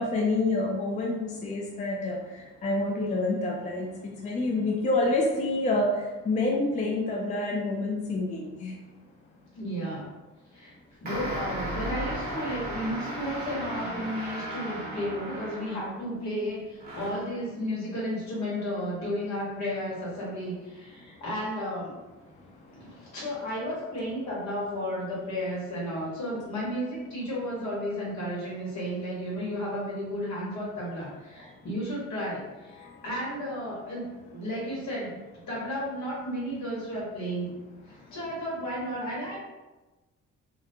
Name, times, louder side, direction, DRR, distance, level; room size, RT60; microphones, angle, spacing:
voice 1, 0.0-2.2 2.6-3.9 4.2-5.9 6.3-8.7, left 2 dB, 25° left, -1 dB, 0.4 m, -27 dB
voice 2, 9.5-10.1 10.5-10.7 11.0-22.0 22.7-35.2 35.5-37.5 37.9-39.3, equal, 65° left, -6 dB, 1.3 m, -33 dB
sound 1, 11.0-16.1 16.8-17.3, right 1 dB, 30° right, 0.8 m, -35 dB
2.5 x 2.1 x 2.7 m, 1.1 s
cardioid pair, 90°, 30 cm